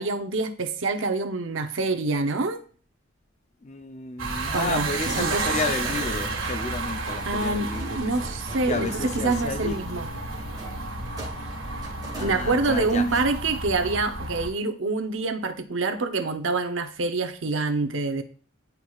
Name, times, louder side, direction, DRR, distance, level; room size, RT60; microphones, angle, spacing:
voice 1, 0.0-2.6 4.5-5.4 7.3-10.1 12.2-18.2, right 3 dB, 70° right, 0.7 m, -26 dB
voice 2, 3.6-8.1 8.7-9.8 12.1-13.0, left 3 dB, 35° left, 0.5 m, -32 dB
sound 1, 4.2-14.5, right 3 dB, 85° right, 1.5 m, -32 dB
sound 2, 5.8-13.5, right 1 dB, 20° right, 1.4 m, -44 dB
sound 3, 8.7-12.7, left 5 dB, 70° left, 0.9 m, -45 dB
9.8 x 4.6 x 2.4 m
head